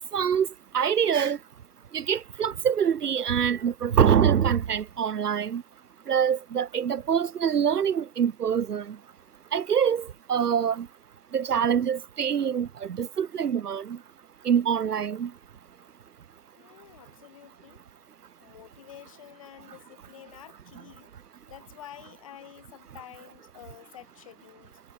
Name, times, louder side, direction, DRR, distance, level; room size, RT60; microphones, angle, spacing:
voice 1, 0.1-0.5 0.7-1.4 1.9-5.6 6.1-9.0 9.5-10.9 11.3-14.0 14.4-15.3, right 8 dB, 75° right, 0.9 m, -25 dB
voice 2, 16.6-17.8 18.4-21.1 21.5-24.8, left 11 dB, 20° left, 2.6 m, -49 dB
hypercardioid pair, 170°, 47 cm